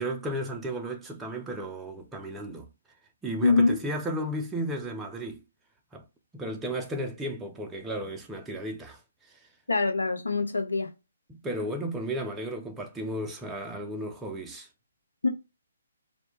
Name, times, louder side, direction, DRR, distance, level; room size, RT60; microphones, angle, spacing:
voice 1, 0.0-2.7 3.2-5.4 5.9-6.0 6.3-9.5 11.3-14.7, right 1 dB, 10° right, 0.3 m, -34 dB
voice 2, 3.4-3.8 9.7-10.9 15.2-15.3, left 3 dB, 85° left, 0.7 m, -24 dB
2.1 x 2.0 x 3.0 m
figure-of-eight pair, 140°, 0 cm